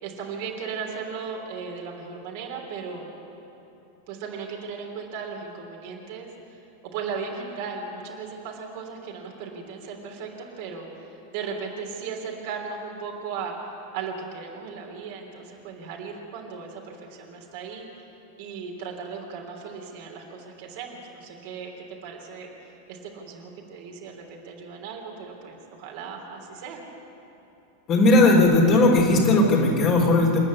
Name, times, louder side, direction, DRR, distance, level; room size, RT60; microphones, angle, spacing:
voice 1, 0.0-3.1 4.1-6.6 6.9-11.1 11.3-13.5 13.9-17.9 18.4-26.8, right 5 dB, 50° right, 0 dB, 3.2 m, -36 dB
voice 2, 27.9-30.4, left 2 dB, 35° left, -1 dB, 3.8 m, -17 dB
27.5 x 9.7 x 9.9 m, 2.9 s
figure-of-eight pair, 90°, 0 cm